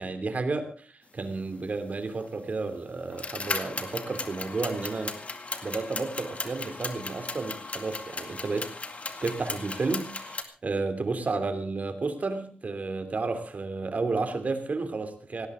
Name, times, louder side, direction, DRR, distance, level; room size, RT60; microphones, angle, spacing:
voice 1, 0.0-8.7 9.2-15.5, right 3 dB, 50° right, 8 dB, 2.9 m, -32 dB
sound 1, 2.2-2.3 3.1-10.4, left 3 dB, 45° left, 2.1 m, -36 dB
18.5 x 18.0 x 3.8 m, 0.39 s
wide cardioid pair, 95°, 3 cm